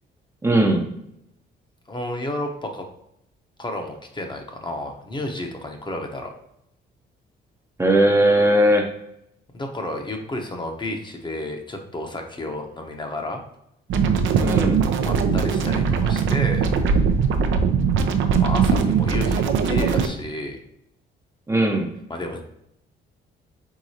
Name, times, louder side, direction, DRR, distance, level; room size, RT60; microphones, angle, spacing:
voice 1, 0.4-0.9 7.8-8.9 14.4-14.8 21.5-21.9, right 1 dB, 15° right, 1 dB, 0.6 m, -18 dB
voice 2, 1.9-2.9 3.6-6.3 9.5-13.4 15.0-16.7 18.4-20.6 22.1-22.4, left 1 dB, 25° left, 3 dB, 0.8 m, -31 dB
sound 1, 13.9-20.1, right 6 dB, 75° right, 0.5 m, -20 dB
4.8 x 3.8 x 2.8 m, 0.79 s
cardioid pair, 90°, 20 cm